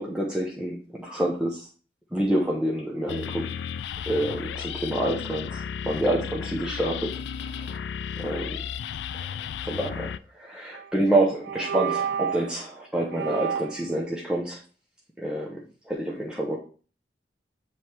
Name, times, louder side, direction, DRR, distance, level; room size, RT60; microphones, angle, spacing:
voice 1, 0.0-1.7 2.1-3.5 4.1-7.1 7.4-7.8 8.2-8.6 9.2-14.6 15.2-16.6, right 1 dB, 5° right, -3 dB, 0.7 m, -28 dB
sound 1, 3.1-10.2, left 7 dB, 80° left, 0.3 m, -34 dB
sound 2, 10.7-11.0 11.4-12.5 13.1-13.9, right 7 dB, 80° right, 0.4 m, -30 dB
7.5 x 3.2 x 4.3 m, 0.40 s
head